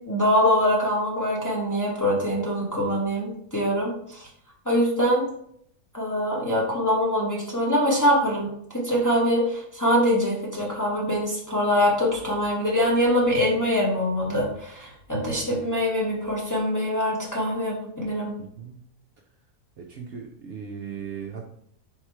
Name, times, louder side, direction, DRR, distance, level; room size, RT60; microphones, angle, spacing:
voice 1, 0.1-4.3 4.6-5.2 5.9-18.3, equal, 15° left, -4 dB, 0.7 m, -24 dB
voice 2, 18.4-18.8 19.8-21.5, right 7 dB, 65° right, 2 dB, 0.7 m, -37 dB
3.7 x 3.1 x 4.5 m, 0.70 s
omnidirectional pair, 1.5 m